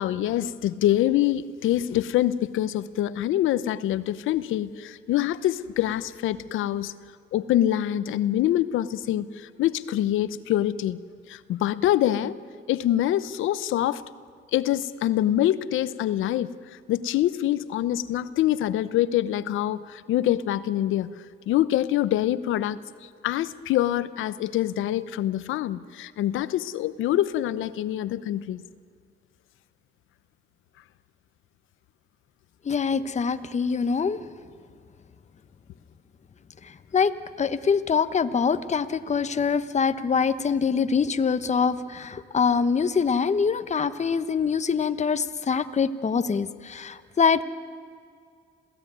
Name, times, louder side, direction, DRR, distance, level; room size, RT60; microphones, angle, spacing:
voice 1, 0.0-6.9 7.3-11.0 11.3-12.3 12.7-14.0 14.5-16.5 16.9-21.1 21.5-28.6, left 12 dB, 85° left, 15 dB, 0.9 m, -25 dB
voice 2, 32.6-34.2 36.9-47.4, left 6 dB, 35° left, 11 dB, 1.1 m, -24 dB
27.5 x 17.0 x 9.4 m, 2.2 s
cardioid pair, 90°, 20 cm